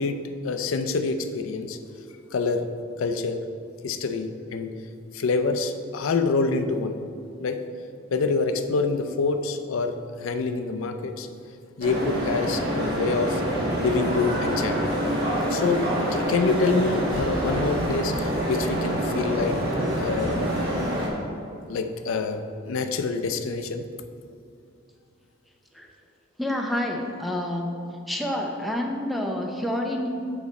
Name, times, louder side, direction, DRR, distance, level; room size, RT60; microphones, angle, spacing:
voice 1, 0.0-1.8 2.3-2.7 3.0-3.4 3.8-4.7 5.1-7.0 7.4-7.6 8.1-11.3 11.8-13.4 13.8-14.8 15.5-19.6 20.0-20.4 21.7-23.8, left 4 dB, 90° left, 8 dB, 0.5 m, -26 dB
sound 1, 11.8-21.1, equal, 50° right, 1.4 m, -26 dB
voice 2, 26.4-27.8 28.1-30.1, left 1 dB, ahead, 1 dB, 0.5 m, -28 dB
7.0 x 5.1 x 4.1 m, 2.5 s
head